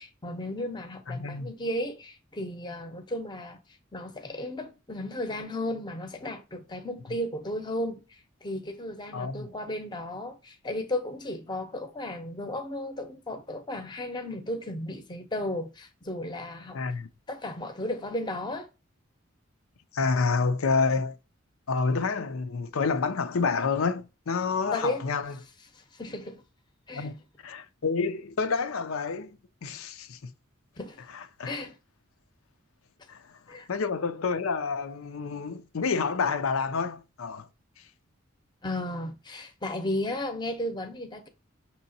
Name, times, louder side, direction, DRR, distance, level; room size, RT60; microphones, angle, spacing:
voice 1, 0.0-3.6 3.9-8.0 8.4-16.8 17.3-18.7 24.7-25.0 25.7-26.4 26.9-27.1 30.8-31.0 31.4-31.8 33.5-33.7 38.6-41.3, left 1 dB, 20° left, 0.7 m, -34 dB
voice 2, 1.1-1.5 9.1-9.5 16.7-17.1 19.9-21.2 21.7-25.4 26.9-30.2 31.1-31.6 33.1-37.5, left 4 dB, 90° left, 0.6 m, -29 dB
6.1 x 2.9 x 2.7 m
head